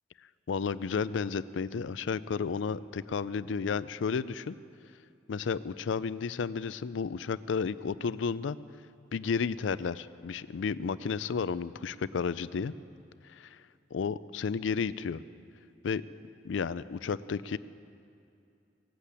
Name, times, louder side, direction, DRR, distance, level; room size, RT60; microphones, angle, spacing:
voice 1, 0.5-4.6 5.3-8.6 9.1-12.7 13.3-13.5 13.9-15.2 15.8-16.0 16.4-17.6, left 5 dB, 85° left, 17 dB, 0.4 m, -32 dB
18.0 x 8.4 x 8.2 m, 2.6 s
head